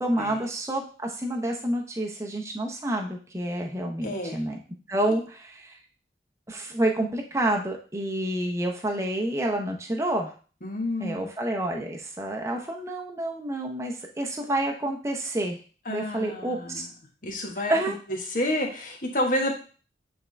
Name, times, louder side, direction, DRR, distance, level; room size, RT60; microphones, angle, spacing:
voice 1, 0.0-4.6 4.9-5.8 6.5-10.3 11.0-15.6 15.9-16.8 17.7-17.9, right 1 dB, 15° right, 1 dB, 0.7 m, -28 dB
voice 2, 4.0-4.4 10.6-11.3 15.8-16.8 17.2-17.8 18.3-19.5, left 1 dB, 50° left, 1 dB, 1.4 m, -29 dB
8.5 x 3.6 x 3.3 m, 0.38 s
head